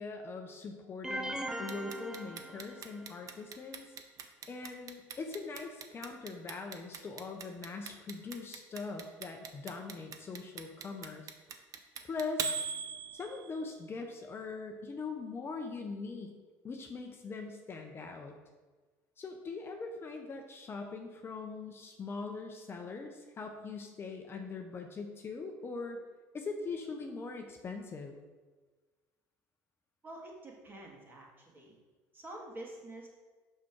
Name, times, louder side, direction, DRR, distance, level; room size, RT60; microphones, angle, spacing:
voice 1, 0.0-3.9 4.5-11.3 12.0-12.5 13.1-16.3 16.6-18.4 19.2-26.0 26.3-28.2, left 4 dB, 30° left, 3 dB, 0.8 m, -41 dB
sound 1, 1.0-3.1, right 1 dB, 10° right, 0.7 m, -40 dB
Clock, 1.7-13.7, right 6 dB, 50° right, 0.8 m, -40 dB
voice 2, 30.0-31.8 32.1-33.1, right 1 dB, 25° right, -2 dB, 2.2 m, -47 dB
6.0 x 5.8 x 4.7 m, 1.3 s
supercardioid pair, 95°, 8 cm